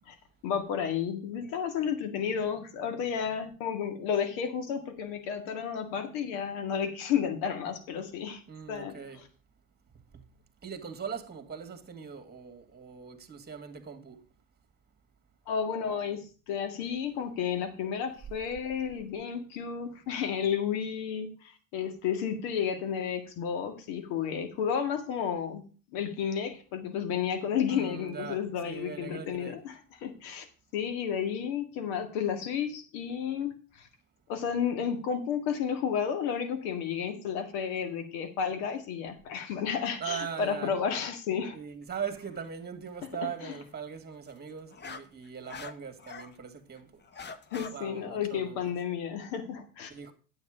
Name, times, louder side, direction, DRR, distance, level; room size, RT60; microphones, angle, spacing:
voice 1, 0.4-8.4 8.7-9.3 15.5-25.6 25.9-30.5 30.7-33.9 34.3-41.6 43.4-43.5 47.5-49.9, left 7 dB, 70° left, 2.0 m, -32 dB
voice 2, 8.5-9.2 10.1-10.3 10.6-14.2 27.7-29.6 40.0-40.7 41.5-46.9 47.7-48.7 49.9-50.1, right 7 dB, 20° right, 2.0 m, -40 dB
sound 1, 42.2-42.5 44.3-46.3 46.8-47.7, left 5 dB, 25° left, 0.9 m, -44 dB
9.7 x 7.9 x 5.0 m
supercardioid pair, 90°, 43 cm